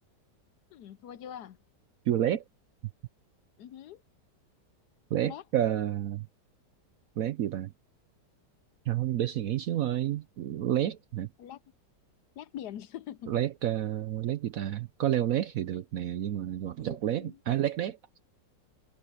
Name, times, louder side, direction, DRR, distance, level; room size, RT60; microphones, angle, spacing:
voice 1, 0.7-1.6 3.6-4.0 5.1-5.4 11.4-11.6 12.4-13.4 16.8-17.4, left 10 dB, 70° left, 1.2 m, -43 dB
voice 2, 2.1-2.4 5.1-6.3 7.2-7.7 8.9-11.3 13.3-18.0, right 11 dB, 65° right, 0.9 m, -29 dB
omnidirectional pair, 2.0 m